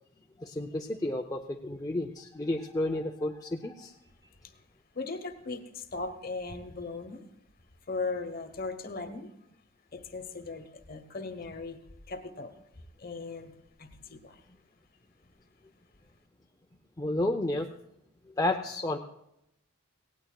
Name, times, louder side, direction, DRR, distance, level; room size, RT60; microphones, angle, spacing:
voice 1, 0.4-3.9 17.0-17.7 18.3-19.0, left 1 dB, 15° left, 1 dB, 0.5 m, -31 dB
voice 2, 4.9-7.2 7.9-9.3 9.9-11.8 12.1-12.5 13.0-14.4, left 3 dB, 45° left, 8 dB, 1.1 m, -38 dB
18.0 x 17.0 x 2.3 m, 0.81 s
head